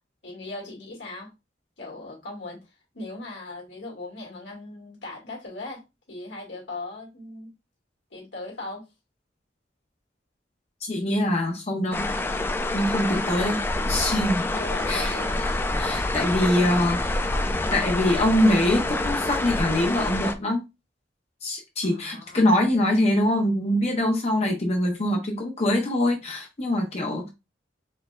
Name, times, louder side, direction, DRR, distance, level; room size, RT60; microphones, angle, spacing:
voice 1, 0.2-1.3 1.8-5.8 6.1-7.5 8.1-8.9 13.5-13.7 14.5-15.6 21.8-22.4, left 2 dB, 85° left, 2.2 m, -39 dB
voice 2, 10.8-12.0 12.7-14.5 14.9-15.2 15.8-17.0 17.7-20.6 21.4-27.3, left 1 dB, 40° left, 0.8 m, -23 dB
sound 1, 11.9-20.3, left 2 dB, 15° left, 0.3 m, -27 dB
4.5 x 3.3 x 2.4 m
head